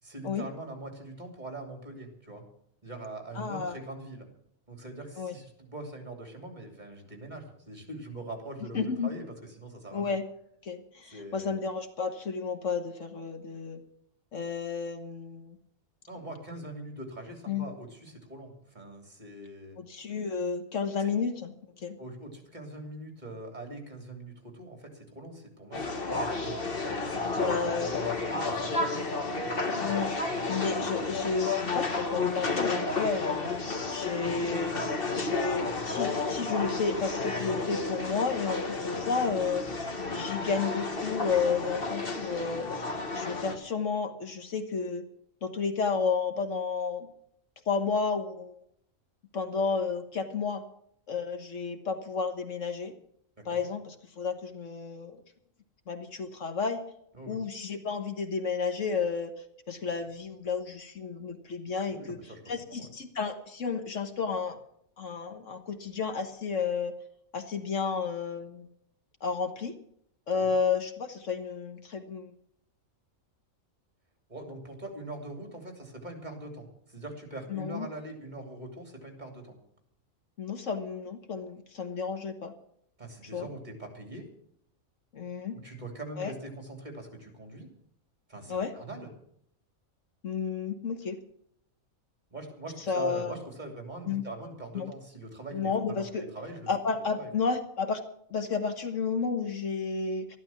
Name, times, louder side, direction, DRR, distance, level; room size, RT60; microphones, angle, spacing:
voice 1, 0.0-2.4 2.8-4.3 4.7-10.1 11.1-11.6 16.1-19.8 21.0-21.1 22.0-29.1 53.5-53.6 57.1-57.4 61.9-62.4 62.7-62.9 70.3-70.5 74.3-79.6 83.0-84.3 85.6-87.7 88.3-89.1 92.3-96.7 97.1-97.3, right 2 dB, 30° right, 4 dB, 3.1 m, -42 dB
voice 2, 3.3-3.7 5.2-5.3 8.7-9.1 9.9-10.2 10.6-13.8 14.3-15.6 17.5-17.7 19.8-22.0 27.3-27.9 29.8-33.5 33.9-34.8 35.1-39.6 40.1-42.7 43.1-45.0 45.4-47.1 47.7-48.5 49.3-50.6 51.1-52.9 53.4-55.2 55.9-56.8 57.3-59.3 59.7-62.2 62.5-64.6 65.0-66.9 67.3-68.7 69.2-69.7 70.3-72.3 77.5-77.9 80.4-82.5 83.3-83.5 85.1-85.6 86.2-86.3 88.5-88.7 90.2-91.2 92.9-93.3 94.1-94.2 94.7-94.9 95.5-96.3 96.7-98.0 98.3-100.4, left 5 dB, 65° left, 7 dB, 1.6 m, -32 dB
sound 1, 25.7-43.6, left 3 dB, 45° left, 1.7 m, -32 dB
13.0 x 12.0 x 7.1 m, 0.71 s
omnidirectional pair, 1.4 m